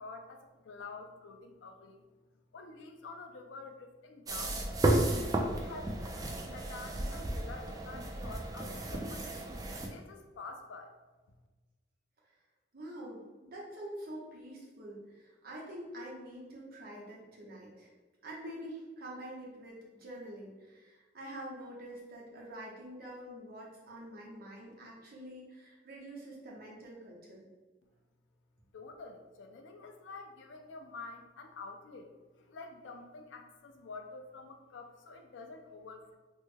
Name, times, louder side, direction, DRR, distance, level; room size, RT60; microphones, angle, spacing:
voice 1, 0.0-2.0 2.5-5.0 5.5-9.4 9.8-10.9 28.7-36.2, left 3 dB, 85° left, 5 dB, 0.4 m, -48 dB
sound 1, 4.3-9.9, right 1 dB, 20° right, 0.3 m, -33 dB
voice 2, 12.7-13.2 13.5-17.9 18.2-27.5, right 1 dB, 55° right, -3 dB, 0.8 m, -46 dB
3.3 x 2.1 x 3.3 m, 1.3 s
head